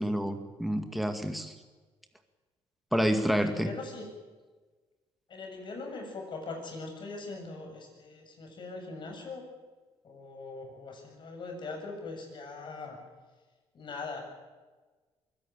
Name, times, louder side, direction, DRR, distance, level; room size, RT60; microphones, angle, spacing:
voice 1, 0.0-1.5 2.9-3.7, equal, ahead, 6 dB, 2.0 m, -28 dB
voice 2, 3.3-4.1 5.3-9.4 10.0-13.0 13.7-14.2, left 3 dB, 50° left, 3 dB, 7.7 m, -41 dB
23.5 x 17.5 x 9.2 m, 1.3 s
cardioid pair, 115°, 10 cm